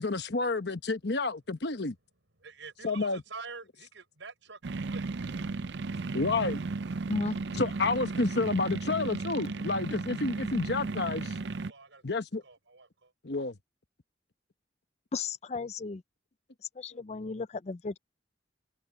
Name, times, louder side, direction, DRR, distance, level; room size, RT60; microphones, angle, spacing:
voice 1, 0.0-1.9 2.8-3.2 6.1-6.6 7.5-11.3 12.0-12.4 13.2-13.5, left 3 dB, 60° left, 1.1 m, -30 dB
voice 2, 2.4-5.1 6.9-7.1 11.6-12.0 12.4-13.1, right 4 dB, 85° right, 5.2 m, -47 dB
sound 1, 4.6-11.7, right 3 dB, 65° right, 0.5 m, -35 dB
voice 3, 15.1-16.0 16.8-18.0, left 3 dB, 35° left, 0.4 m, -34 dB
head